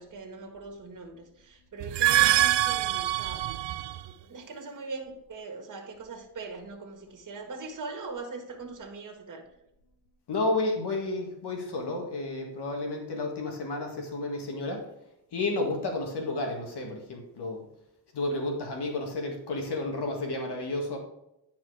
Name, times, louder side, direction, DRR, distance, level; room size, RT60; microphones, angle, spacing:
voice 1, 0.0-3.5 4.1-9.4, right 3 dB, 45° right, 2 dB, 1.8 m, -41 dB
sound 1, 1.8-4.1, right 14 dB, 80° right, 0.5 m, -24 dB
voice 2, 10.3-14.9 15.3-17.7 18.1-21.0, left 2 dB, 65° left, 1 dB, 2.0 m, -31 dB
10.5 x 4.6 x 4.9 m, 0.85 s
cardioid pair, 115°, 43 cm